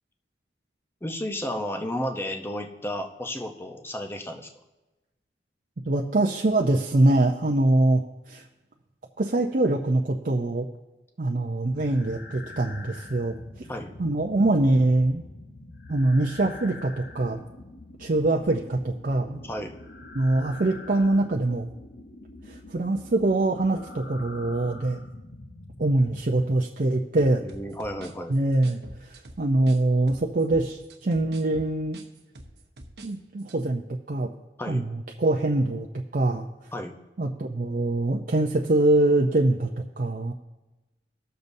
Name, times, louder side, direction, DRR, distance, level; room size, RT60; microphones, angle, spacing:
voice 1, 1.0-4.5 13.7-13.9 19.5-19.8 27.4-28.3 34.6-34.9 36.7-37.0, left 1 dB, 15° left, 4 dB, 0.8 m, -32 dB
voice 2, 5.9-8.4 9.2-10.7 11.2-13.3 14.0-15.2 15.9-17.4 18.0-19.4 20.1-21.7 22.5-25.0 25.8-27.4 28.3-32.0 33.0-33.8 34.1-34.3 34.7-35.9 36.1-36.5 37.2-40.3, right 2 dB, 50° right, 0 dB, 0.6 m, -24 dB
sound 1, 11.7-26.6, left 2 dB, 60° left, 0.9 m, -45 dB
sound 2, 27.2-29.8 30.1-33.1 33.4-33.6, right 1 dB, 65° right, 1.0 m, -45 dB
19.5 x 6.8 x 2.7 m, 1.1 s
head